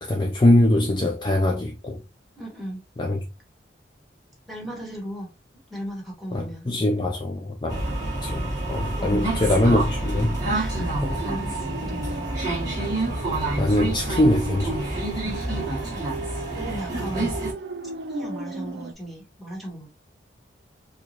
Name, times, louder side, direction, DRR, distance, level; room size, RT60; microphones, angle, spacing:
voice 1, 0.0-2.0 3.0-3.2 6.3-7.8 8.2-10.4 13.6-14.8, left 1 dB, 25° left, 0.4 m, -22 dB
voice 2, 2.4-2.8 4.5-5.3 5.7-6.6 9.0-9.6 10.5-12.2 15.2-16.0 16.3-17.3 18.1-19.9, equal, ahead, 1.4 m, -36 dB
sound 1, 7.7-17.5, right 2 dB, 20° right, 1.7 m, -28 dB
sound 2, 10.9-18.9, right 2 dB, 65° right, 0.5 m, -38 dB
4.6 x 2.3 x 2.8 m
head